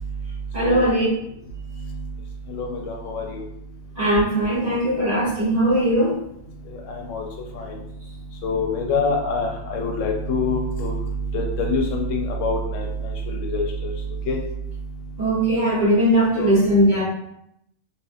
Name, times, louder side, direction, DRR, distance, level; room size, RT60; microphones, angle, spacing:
voice 1, 0.5-1.1 4.0-6.1 15.2-17.0, right 1 dB, 35° right, -9 dB, 1.2 m, -19 dB
voice 2, 2.5-3.4 6.9-7.3 7.6-7.7 8.4-10.9 11.3-13.9 14.3-14.4 16.4-16.5, left 2 dB, 80° left, 2 dB, 0.9 m, -25 dB
2.7 x 2.5 x 2.5 m, 0.78 s
omnidirectional pair, 1.3 m